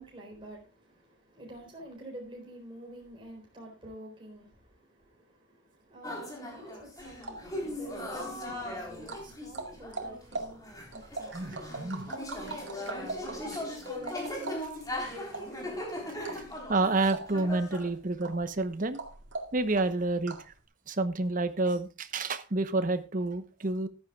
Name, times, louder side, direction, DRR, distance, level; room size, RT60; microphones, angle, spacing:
voice 1, 0.0-11.6, right 1 dB, 25° right, 4.1 m, -49 dB
sound 1, 6.0-17.9, left 1 dB, 20° left, 3.9 m, -39 dB
sound 2, 7.0-20.6, right 3 dB, 80° right, 2.2 m, -43 dB
voice 2, 11.3-12.1 13.5-13.6 14.2-14.3 16.7-19.0 19.5-20.4 20.9-23.9, right 2 dB, 45° right, 1.0 m, -29 dB
14.5 x 11.5 x 2.4 m
head